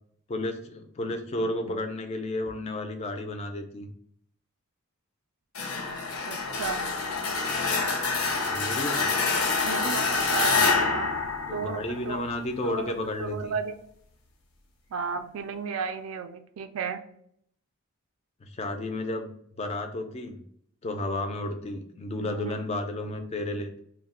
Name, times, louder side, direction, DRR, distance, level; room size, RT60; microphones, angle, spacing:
voice 1, 0.3-3.9 8.5-9.0 10.5-11.0 11.5-13.5 18.4-19.3 19.6-20.4 20.8-23.8, left 1 dB, 30° left, 5 dB, 0.3 m, -32 dB
sound 1, 5.5-12.3, left 4 dB, 85° left, 0.6 m, -27 dB
voice 2, 6.3-6.8 9.6-11.2 11.5-12.2 12.6-12.9 13.2-13.7 14.9-17.0 22.2-22.6, right 6 dB, 70° right, 8 dB, 0.3 m, -34 dB
2.2 x 2.1 x 3.6 m, 0.68 s
head